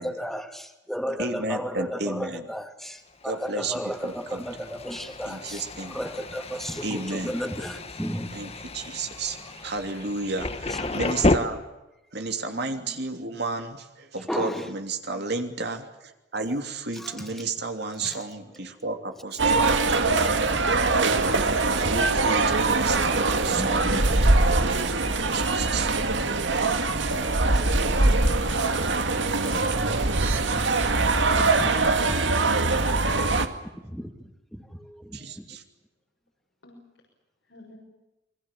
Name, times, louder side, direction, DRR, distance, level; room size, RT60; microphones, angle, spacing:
voice 1, 0.0-8.4 10.7-11.1 12.5-12.7 14.3-14.7 17.0-17.3 18.0-18.2 21.4-21.5 23.5-24.0 29.9-30.6 31.4-32.8 33.1-33.5 33.8-35.5, equal, ahead, 6 dB, 2.5 m, -35 dB
voice 2, 1.2-2.5 3.2-4.4 5.3-6.0 6.8-7.4 8.3-11.6 12.1-20.4 21.7-23.9 25.0-25.9 29.1-29.7 35.1-35.6, right 3 dB, 65° right, 6 dB, 3.0 m, -32 dB
Thunder, 3.2-11.4, left 2 dB, 35° left, 1.6 m, -31 dB
sound 1, 19.4-33.5, right 3 dB, 80° right, 2.1 m, -22 dB
voice 3, 36.6-36.8 37.5-37.8, left 1 dB, 85° left, -1 dB, 6.4 m, -47 dB
28.5 x 22.5 x 7.5 m, 0.96 s
head